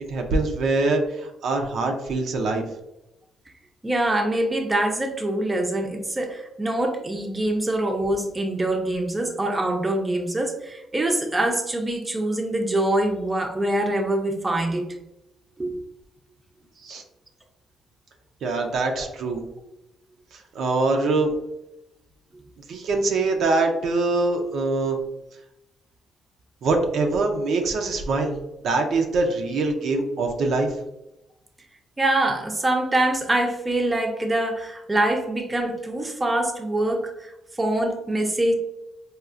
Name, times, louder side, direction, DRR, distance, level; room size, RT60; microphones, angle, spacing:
voice 1, 0.1-2.6 16.8-17.0 18.4-19.4 20.5-21.3 22.7-25.0 26.6-28.3 28.6-30.7, right 3 dB, 70° right, 3 dB, 0.5 m, -23 dB
voice 2, 3.8-14.9 15.6-15.8 19.0-19.1 32.0-37.3 37.6-38.5, right 1 dB, 20° right, 3 dB, 0.5 m, -24 dB
4.3 x 2.3 x 2.4 m, 0.90 s
cardioid pair, 90°, 0 cm